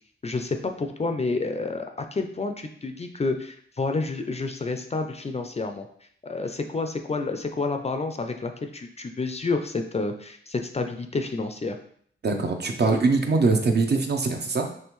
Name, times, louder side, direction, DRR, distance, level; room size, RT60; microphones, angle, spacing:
voice 1, 0.2-1.8 2.1-5.9 6.2-11.8, left 3 dB, 30° left, 6 dB, 0.4 m, -29 dB
voice 2, 12.2-14.7, right 3 dB, 50° right, 4 dB, 0.7 m, -22 dB
5.3 x 3.3 x 3.1 m, 0.62 s
wide cardioid pair, 120°, 21 cm